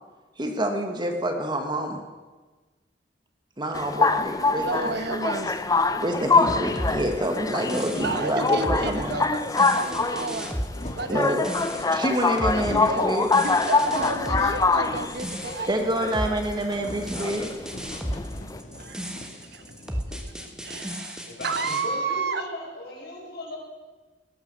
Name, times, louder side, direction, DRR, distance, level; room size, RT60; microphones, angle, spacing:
voice 1, 0.4-2.0 3.6-5.1 6.0-9.2 11.1-11.5 11.9-13.3 15.7-17.5, right 1 dB, 25° right, 4 dB, 1.6 m, -27 dB
sound 1, 3.7-18.6, left 4 dB, 20° left, 0.6 m, -25 dB
voice 2, 4.5-5.9 7.9-10.5 11.0-11.9 12.5-13.1 13.4-15.9 18.7-20.0 20.4-22.4, right 3 dB, 65° right, 9 dB, 1.1 m, -32 dB
sound 2, 6.4-6.9 7.6-7.7 7.8-8.4 8.8-9.6 10.3-11.3 12.0-12.1 12.4-13.0 13.4-15.3 15.6-15.7 16.0-16.1 16.5-21.0, left 1 dB, 40° left, 1.8 m, -41 dB
sound 3, 6.8-21.8, equal, 5° right, 1.4 m, -34 dB
voice 3, 21.2-23.6, left 1 dB, 65° left, -2 dB, 5.1 m, -38 dB
18.0 x 9.6 x 6.8 m, 1.3 s
head